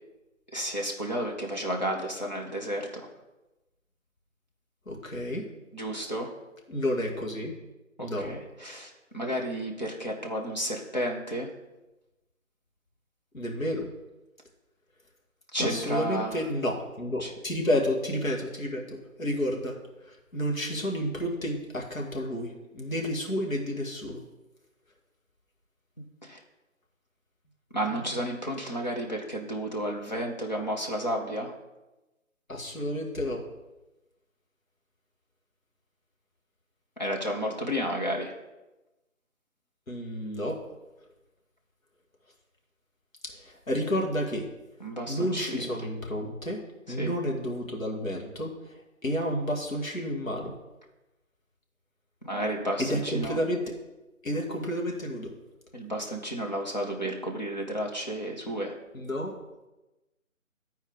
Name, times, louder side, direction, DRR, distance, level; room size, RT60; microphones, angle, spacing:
voice 1, 0.5-3.1 5.7-6.3 8.0-11.5 15.5-16.4 17.2-17.3 26.0-26.4 27.7-31.5 37.0-38.3 44.8-45.9 47.0-47.1 52.2-53.4 55.7-58.7, equal, 30° left, 0 dB, 0.9 m, -32 dB
voice 2, 4.9-5.5 6.7-7.5 8.0-8.4 13.3-13.9 15.6-19.8 20.0-24.2 32.5-33.4 39.9-40.6 43.3-44.5 45.0-46.6 46.9-48.8 49.0-50.5 52.8-53.6 54.2-55.3 58.9-59.4, equal, 70° left, 0 dB, 1.8 m, -30 dB
12.0 x 4.4 x 3.7 m, 1.0 s
figure-of-eight pair, 170°, 41 cm